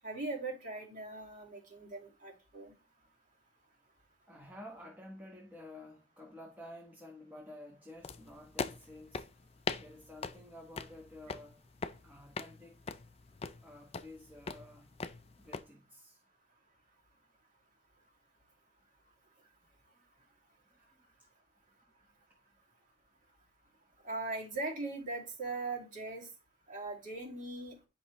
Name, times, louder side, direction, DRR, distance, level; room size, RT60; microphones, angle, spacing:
voice 1, 0.0-2.7 24.0-26.3 26.7-27.8, right 3 dB, 40° right, 2.5 m, -40 dB
voice 2, 4.3-9.3 9.8-11.6 12.0-12.8 13.6-14.9 15.4-16.2 20.7-20.8 21.2-21.3, left 1 dB, 10° right, 1.2 m, -51 dB
sound 1, 8.0-15.6, left 4 dB, 30° left, 0.5 m, -42 dB
9.7 x 5.6 x 3.2 m
head